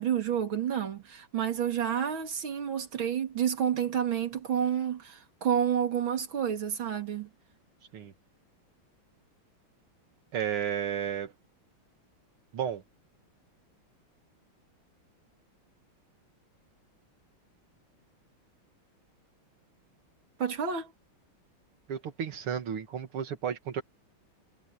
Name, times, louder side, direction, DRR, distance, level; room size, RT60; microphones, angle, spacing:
voice 1, 0.0-7.3 20.4-20.9, right 8 dB, 65° right, 3.3 m, -29 dB
voice 2, 10.3-11.3 12.5-12.8 21.9-23.8, right 8 dB, 90° right, 2.6 m, -33 dB
omnidirectional pair, 2.3 m